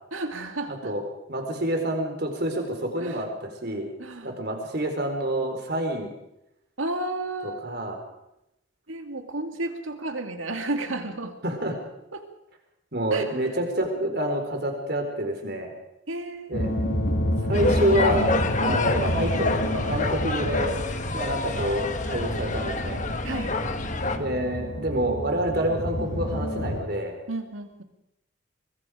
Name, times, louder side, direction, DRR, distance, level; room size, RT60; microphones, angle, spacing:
voice 1, 0.1-0.9 3.0-3.2 4.0-4.4 6.8-7.6 8.9-11.3 12.1-12.2 13.1-13.2 16.1-16.6 18.7-18.9 23.2-23.6 27.3-27.8, right 2 dB, 80° right, 6 dB, 2.4 m, -32 dB
voice 2, 0.7-1.0 1.3-3.9 4.2-6.1 7.4-8.0 11.4-11.8 12.9-15.7 16.5-16.7 17.4-18.3 18.6-20.8 21.1-23.0 24.1-27.2, right 1 dB, 50° right, 4 dB, 4.2 m, -28 dB
sound 1, 16.5-26.8, equal, 60° left, 4.5 m, -29 dB
sound 2, 17.5-24.2, left 2 dB, 35° left, 1.5 m, -28 dB
23.5 x 22.0 x 5.0 m, 0.85 s
head